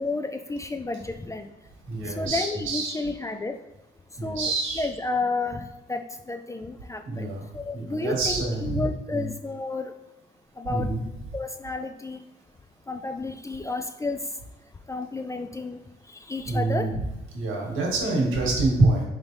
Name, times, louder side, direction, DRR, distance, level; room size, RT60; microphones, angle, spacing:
voice 1, 0.0-1.5 2.0-3.6 4.2-7.3 7.5-8.3 8.6-9.9 10.6-10.9 11.3-12.2 12.9-14.2 14.9-15.8 16.3-16.9, left 3 dB, 15° left, 7 dB, 0.3 m, -31 dB
voice 2, 1.9-3.0 4.2-4.9 7.1-7.4 7.7-8.8 9.1-9.3 10.7-11.0 16.5-16.9 17.3-19.0, right 2 dB, 80° right, -1 dB, 1.5 m, -26 dB
4.7 x 3.3 x 2.7 m, 1.0 s
cardioid pair, 90°, 20 cm